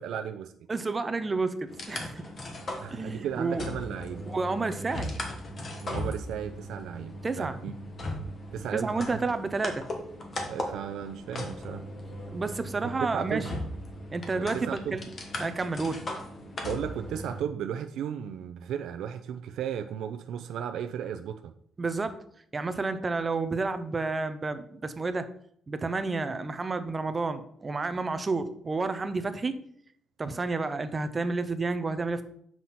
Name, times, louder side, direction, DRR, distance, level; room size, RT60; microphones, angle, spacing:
voice 1, 0.0-0.5 2.8-4.3 5.8-7.7 8.5-9.2 10.5-11.8 12.8-13.5 14.4-15.0 16.6-21.5, right 9 dB, 75° right, 7 dB, 0.5 m, -35 dB
voice 2, 0.7-2.3 2.9-3.6 4.3-5.1 7.2-7.6 8.7-9.8 12.3-13.5 14.1-15.1 15.4-16.0 21.8-22.2 22.5-25.3 25.7-29.5 30.2-32.2, right 3 dB, 20° right, 11 dB, 0.5 m, -30 dB
sound 1, 1.7-17.4, left 1 dB, 30° left, 1.1 m, -38 dB
7.6 x 5.9 x 4.0 m, 0.67 s
cardioid pair, 170°, 0 cm